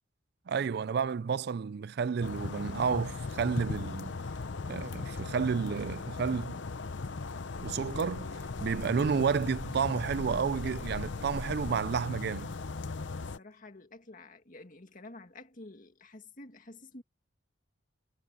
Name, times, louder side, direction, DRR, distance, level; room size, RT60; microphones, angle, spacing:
voice 1, 0.5-4.2 4.7-6.6 7.6-8.3 8.6-12.5, right 6 dB, 55° right, 0.4 m, -31 dB
sound 1, 2.2-13.4, left 3 dB, 65° left, 0.7 m, -38 dB
voice 2, 13.4-17.0, left 2 dB, 45° left, 2.1 m, -50 dB
head